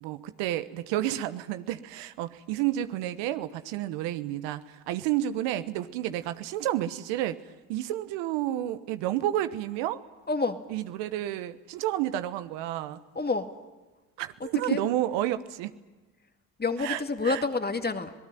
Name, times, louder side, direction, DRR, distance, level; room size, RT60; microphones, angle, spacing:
voice 1, 0.0-7.4 7.7-10.0 10.7-13.0 14.2-15.7 16.8-17.4, right 13 dB, 75° right, 12 dB, 1.2 m, -30 dB
voice 2, 10.3-10.6 13.2-13.5 14.4-14.8 16.6-18.1, left 3 dB, 20° left, 7 dB, 2.1 m, -28 dB
26.0 x 19.0 x 9.2 m, 1.2 s
hypercardioid pair, 65°, 44 cm